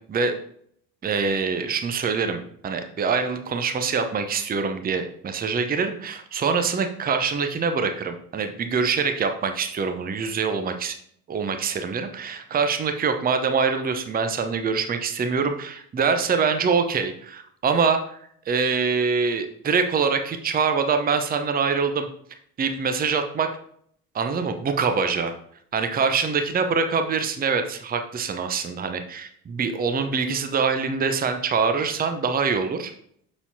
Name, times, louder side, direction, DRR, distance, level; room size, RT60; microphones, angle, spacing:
voice 1, 1.0-10.9 11.3-18.2 18.5-22.1 22.6-23.5 24.1-25.3 25.7-32.9, right 5 dB, 20° right, 7 dB, 0.8 m, -24 dB
7.0 x 6.8 x 2.8 m, 0.64 s
figure-of-eight pair, 55°, 46 cm